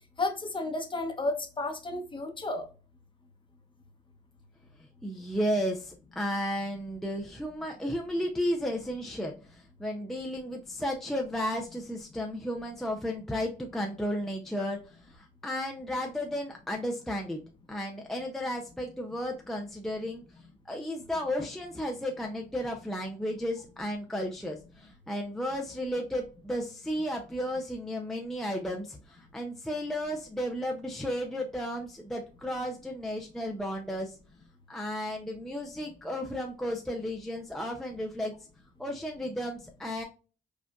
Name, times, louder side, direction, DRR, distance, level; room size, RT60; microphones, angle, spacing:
voice 1, 0.2-2.7, left 2 dB, 25° left, 0.9 m, -32 dB
voice 2, 4.8-17.4 17.7-20.2 20.7-34.2 34.7-38.3 38.8-40.0, equal, ahead, 0.5 m, -33 dB
5.1 x 2.4 x 2.3 m
cardioid pair, 90°, 20 cm